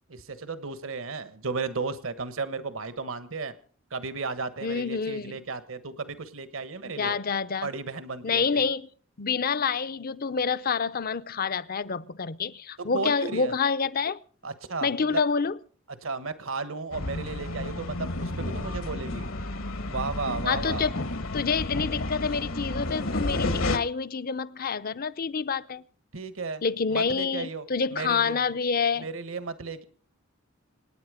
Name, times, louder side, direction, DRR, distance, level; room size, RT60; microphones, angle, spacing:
voice 1, 0.1-3.5 3.9-7.2 7.6-8.6 12.8-13.5 14.4-15.2 15.9-19.3 19.9-20.9 26.1-26.6 26.9-27.6 27.9-28.4 29.0-29.8, right 4 dB, 70° right, 1.4 m, -34 dB
voice 2, 4.6-5.3 6.8-7.7 8.2-8.9 9.2-14.2 14.8-15.6 20.5-21.0 21.3-25.8 26.6-29.1, left 5 dB, 45° left, 0.7 m, -27 dB
sound 1, 16.9-23.8, left 2 dB, 70° left, 1.4 m, -31 dB
26.5 x 9.8 x 5.0 m
head